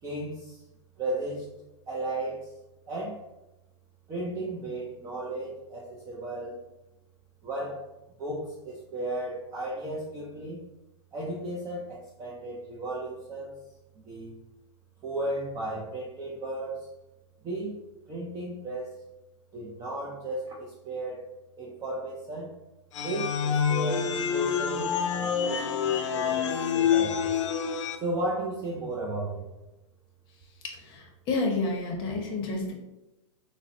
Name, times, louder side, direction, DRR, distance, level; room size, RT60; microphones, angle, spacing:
voice 1, 0.0-0.6 1.0-1.5 1.9-2.5 2.9-3.2 4.1-6.6 7.4-7.8 8.2-10.6 11.1-13.6 14.0-14.4 15.0-16.9 17.4-17.8 18.1-19.0 19.5-21.3 21.6-22.5 23.0-27.4 28.0-29.5, right 1 dB, 20° right, -4 dB, 0.4 m, -35 dB
sound 1, 22.9-28.0, left 7 dB, 75° left, 0.4 m, -27 dB
voice 2, 30.6-32.7, left 3 dB, 30° left, 1 dB, 0.7 m, -30 dB
3.7 x 2.1 x 2.6 m, 0.99 s
hypercardioid pair, 140°, 16 cm